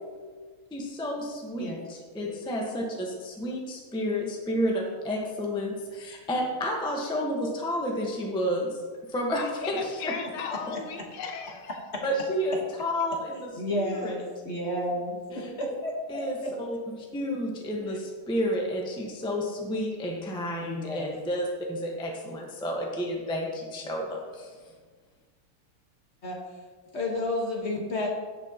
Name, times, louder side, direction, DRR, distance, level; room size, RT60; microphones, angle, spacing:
voice 1, 0.7-8.8 9.1-9.8 10.1-10.2 12.0-13.5 13.8-14.1 15.3-15.5 16.1-16.8 17.1-24.5, equal, 5° left, -1 dB, 0.7 m, -31 dB
voice 2, 9.3-11.8, left 5 dB, 75° left, 4 dB, 1.8 m, -36 dB
voice 3, 13.5-15.2 15.6-16.5 20.6-21.1 26.2-26.4 26.9-28.1, left 1 dB, 35° left, -1 dB, 1.4 m, -31 dB
16.0 x 6.2 x 2.9 m, 1.5 s
omnidirectional pair, 2.4 m